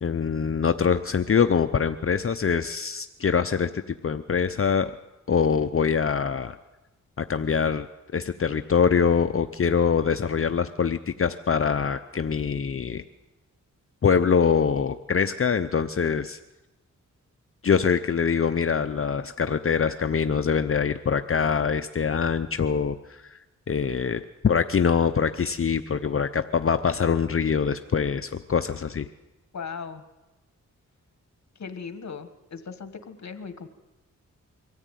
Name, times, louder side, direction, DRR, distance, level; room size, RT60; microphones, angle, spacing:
voice 1, 0.0-4.9 5.3-6.6 7.2-7.9 8.1-13.0 14.0-16.4 17.6-23.4 23.7-29.1, left 6 dB, 45° left, 9 dB, 0.7 m, -24 dB
voice 2, 29.5-30.0 31.5-33.7, left 5 dB, 60° left, 9 dB, 1.6 m, -38 dB
23.5 x 14.5 x 9.2 m, 1.1 s
wide cardioid pair, 85°, 31 cm